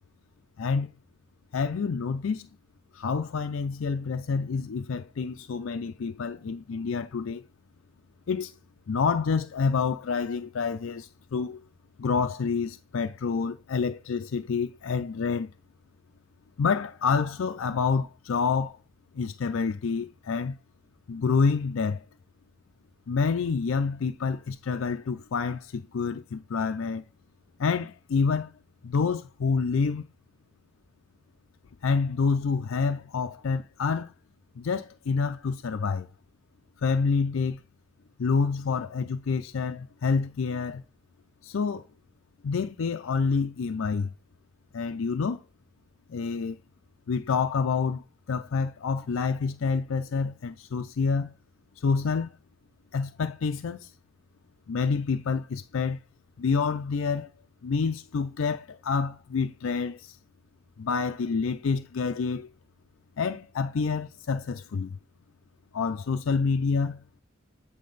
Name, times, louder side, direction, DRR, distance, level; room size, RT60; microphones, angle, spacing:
voice 1, 0.6-0.9 1.5-2.5 2.9-7.4 8.3-8.5 8.9-11.6 12.0-15.5 16.6-18.8 19.1-20.6 21.1-22.0 23.1-27.0 27.6-28.5 28.8-30.0 31.8-34.1 34.6-36.1 36.8-37.6 38.2-40.8 41.4-41.8 42.4-44.1 44.7-45.4 46.1-46.6 47.1-51.3 51.8-52.3 52.9-53.9 54.7-56.0 56.4-57.3 57.6-60.2 60.8-62.5 63.2-65.0 65.7-67.0, left 5 dB, 85° left, 0.4 m, -28 dB
8.5 x 3.5 x 3.9 m
head